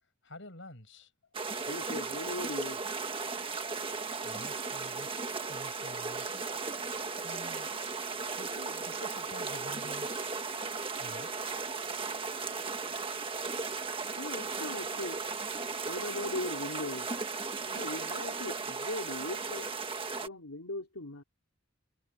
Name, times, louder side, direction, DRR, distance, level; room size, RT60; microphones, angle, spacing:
voice 1, 0.2-1.1 4.2-6.4 7.2-7.8 8.4-10.4 11.0-11.3, left 1 dB, 60° left, 7.9 m, -49 dB
sound 1, 1.3-20.3, right 4 dB, 25° right, 1.5 m, -36 dB
voice 2, 1.7-2.8 14.2-15.4 15.9-17.1 17.7-19.9 20.2-21.2, left 2 dB, 85° left, 3.5 m, -39 dB
head